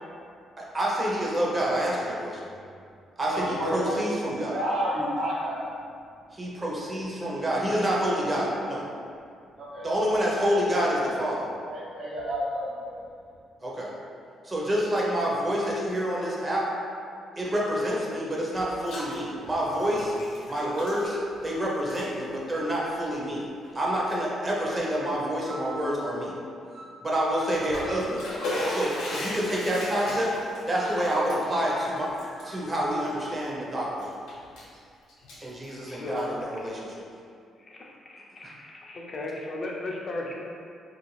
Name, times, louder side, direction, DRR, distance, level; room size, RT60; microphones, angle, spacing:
voice 1, 0.6-2.4 3.2-4.6 6.3-8.8 9.8-11.5 13.6-13.9 14.4-16.7 17.4-20.2 20.5-21.2 21.4-23.4 23.7-26.3 27.0-28.3 28.7-30.3 30.7-32.1 32.4-34.1 35.4-36.9 38.4-38.5, equal, 25° right, -4 dB, 0.6 m, -27 dB
voice 2, 3.3-5.7 9.6-10.0 10.3-10.4 11.7-12.9, equal, 65° right, -7 dB, 0.7 m, -30 dB
Bathtub (filling or washing), 18.5-19.2 19.4-21.5 21.8-22.1 22.9-23.0 23.6-23.7 24.2-24.3 27.5-33.6 34.0-34.8 35.1-36.4, left 1 dB, 85° left, 0.7 m, -37 dB
sound 1, 20.2-21.8 23.8-24.3 25.5-26.0 26.7-27.0 27.3-28.2 30.8-31.1 31.5-33.3, right 2 dB, 85° right, 1.1 m, -45 dB
voice 3, 35.9-36.3 37.6-40.3, left 2 dB, 40° left, -1 dB, 0.4 m, -36 dB
2.4 x 2.3 x 3.1 m, 2.3 s
cardioid pair, 90°, 0 cm